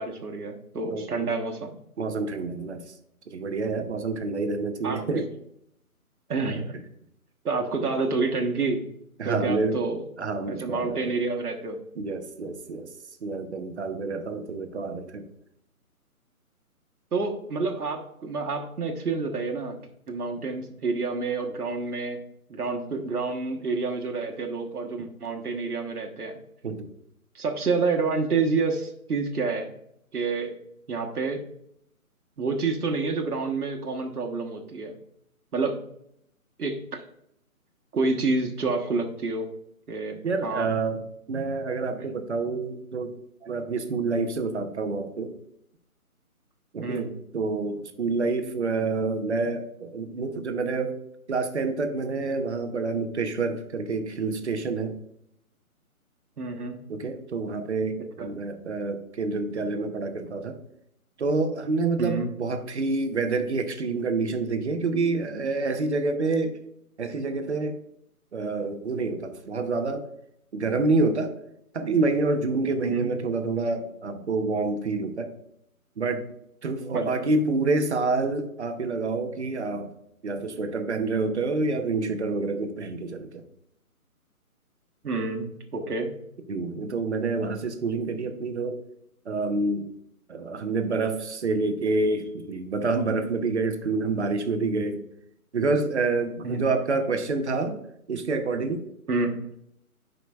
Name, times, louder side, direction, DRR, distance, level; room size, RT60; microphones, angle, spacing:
voice 1, 0.0-1.7 4.8-5.0 6.3-6.7 7.4-8.8 9.2-10.0 10.5-11.8 17.1-19.8 20.1-22.2 22.5-26.3 27.3-29.7 30.1-30.5 30.9-31.4 32.4-34.9 35.5-35.8 36.6-37.0 37.9-39.5 39.9-40.7 42.0-42.1 46.8-47.1 56.4-56.8 58.2-58.3 62.0-62.3 72.8-73.1 76.9-77.3 85.0-86.1 96.4-96.6 99.1-99.5, right 4 dB, 80° right, 3 dB, 1.3 m, -28 dB
voice 2, 0.9-1.3 2.0-2.8 3.3-5.2 9.2-9.8 10.2-11.0 12.0-12.9 13.2-15.2 26.6-26.9 40.2-41.0 41.3-43.1 43.4-45.3 46.7-51.0 51.3-54.9 56.9-60.6 61.2-66.6 67.0-67.8 68.3-70.0 70.5-71.4 71.7-75.3 76.0-76.3 76.6-79.9 80.2-83.4 86.5-88.8 89.2-89.9 90.3-95.0 95.5-97.8 98.1-98.9, right 3 dB, 50° right, 8 dB, 0.9 m, -27 dB
10.0 x 5.1 x 2.3 m, 0.74 s
figure-of-eight pair, 160°, 44 cm